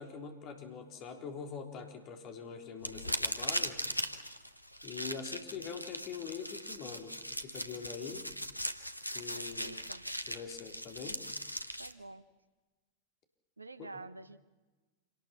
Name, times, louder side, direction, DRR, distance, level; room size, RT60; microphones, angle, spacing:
voice 1, 0.0-3.8 4.8-8.3 9.1-9.7 10.3-11.2 13.8-14.0, left 6 dB, 35° left, 5 dB, 3.7 m, -44 dB
sound 1, 2.8-11.9, equal, 90° left, 1.1 m, -39 dB
voice 2, 5.0-5.8 9.3-10.0 11.8-12.3 13.6-14.4, right 3 dB, 80° right, 14 dB, 1.0 m, -49 dB
27.0 x 18.5 x 7.0 m, 1.2 s
figure-of-eight pair, 90°, 0 cm